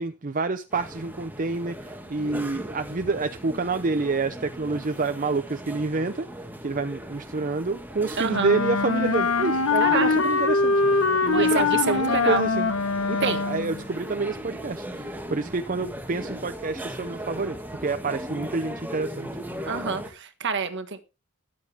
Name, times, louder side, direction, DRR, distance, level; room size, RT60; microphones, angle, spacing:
voice 1, 0.0-6.3 6.6-12.7 13.1-17.6 17.8-19.3, right 3 dB, 40° right, 0.7 m, -28 dB
sound 1, 0.7-20.1, equal, 10° right, 2.2 m, -38 dB
voice 2, 8.2-8.5 9.8-10.2 11.3-12.4 13.2-13.5 19.6-21.0, right 5 dB, 55° right, 1.6 m, -28 dB
Wind instrument woodwind instrument, 8.3-13.8, left 4 dB, 75° left, 1.1 m, -23 dB
13.5 x 10.5 x 3.5 m
head